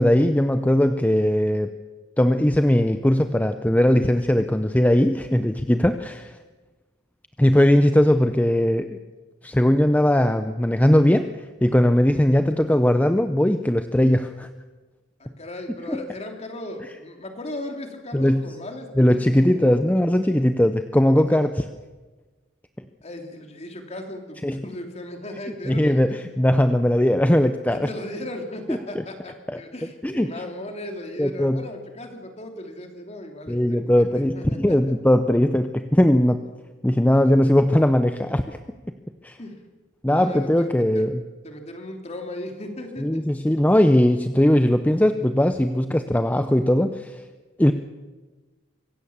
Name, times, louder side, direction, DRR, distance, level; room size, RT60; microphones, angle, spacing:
voice 1, 0.0-1.7 2.2-6.3 7.4-9.0 9.4-11.3 11.6-14.5 15.9-16.0 18.1-18.5 19.0-21.7 24.4-24.6 25.6-27.9 28.7-28.8 29.5-29.6 30.0-30.3 31.2-31.7 33.5-36.4 36.8-38.6 39.2-39.4 40.0-41.2 43.0-47.2 47.6-47.7, left 1 dB, 10° left, 9 dB, 0.6 m, -19 dB
voice 2, 15.2-19.8 23.0-26.3 27.7-34.8 39.4-39.6 40.1-40.7 40.9-41.1 41.4-43.2, left 1 dB, 35° left, 4 dB, 3.1 m, -37 dB
24.5 x 16.5 x 7.3 m, 1.3 s
head